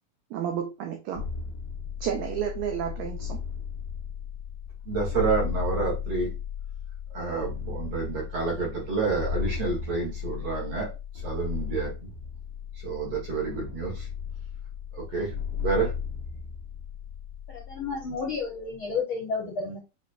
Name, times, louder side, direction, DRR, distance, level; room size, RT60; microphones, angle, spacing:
voice 1, 0.3-1.2 2.0-3.4, right 9 dB, 80° right, 1.6 m, -31 dB
sound 1, 1.1-18.8, left 7 dB, 75° left, 0.9 m, -35 dB
voice 2, 4.8-6.3 7.1-10.9 11.2-12.1 12.7-14.1 14.9-15.3 15.6-15.9, right 4 dB, 50° right, 2.3 m, -29 dB
voice 3, 17.5-19.8, left 4 dB, 60° left, 1.4 m, -31 dB
6.7 x 3.1 x 2.5 m
omnidirectional pair, 3.8 m